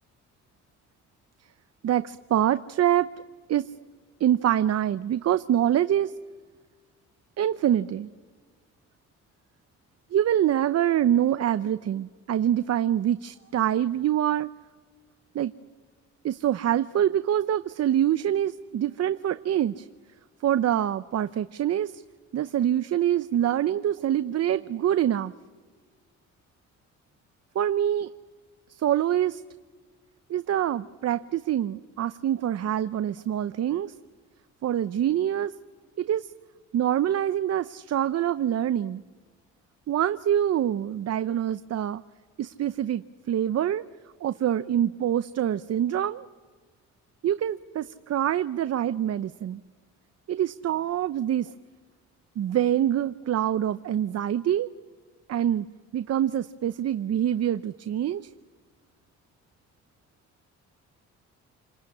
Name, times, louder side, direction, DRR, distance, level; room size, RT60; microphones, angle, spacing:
voice 1, 1.8-3.1 3.5-3.7 4.2-6.1 7.4-8.1 10.1-14.5 15.3-15.5 16.2-19.9 20.4-22.0 22.3-25.3 27.5-28.1 28.7-29.4 30.3-33.9 34.6-35.5 36.0-36.3 36.7-39.0 39.9-42.0 42.4-43.8 44.2-46.3 47.2-49.6 50.3-51.5 52.4-54.7 55.3-55.7 55.9-58.3, right 11 dB, 55° right, 12 dB, 0.7 m, -25 dB
28.5 x 20.5 x 9.7 m, 1.5 s
cardioid pair, 90°, 30 cm